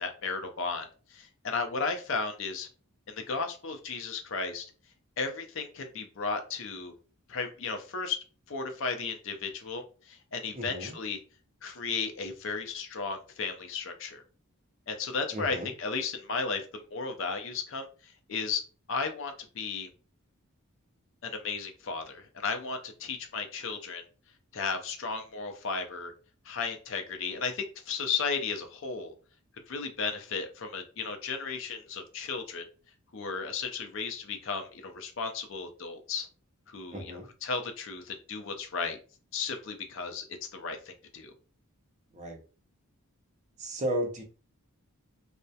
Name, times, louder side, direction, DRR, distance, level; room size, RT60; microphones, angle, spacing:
voice 1, 0.0-2.7 3.1-4.7 5.2-6.9 7.3-8.2 8.5-11.2 11.6-14.2 14.9-18.6 18.9-19.9 21.2-24.0 24.5-26.1 26.5-29.1 29.7-32.6 33.1-36.3 36.7-39.0 39.3-41.3, left 4 dB, 60° left, 6 dB, 0.4 m, -34 dB
voice 2, 10.5-10.9 15.3-15.7 36.9-37.3 42.1-42.4 43.6-44.2, right 1 dB, 30° right, 2 dB, 0.5 m, -34 dB
2.3 x 2.1 x 2.7 m, 0.37 s
head